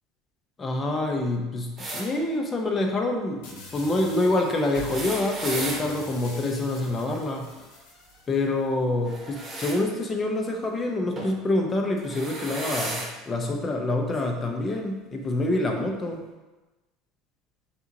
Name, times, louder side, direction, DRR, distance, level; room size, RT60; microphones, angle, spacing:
voice 1, 0.6-7.5 8.3-16.2, left 2 dB, 25° left, 2 dB, 0.6 m, -26 dB
sound 1, 1.8-2.1 4.7-5.8 9.0-9.8 11.2-11.4 12.0-13.1 14.1-14.2 15.4-15.5, right 2 dB, 25° right, 1.1 m, -34 dB
sound 2, 3.4-8.4, left 3 dB, 80° left, 0.9 m, -43 dB
5.4 x 2.9 x 2.7 m, 1.1 s
supercardioid pair, 130°, 0 cm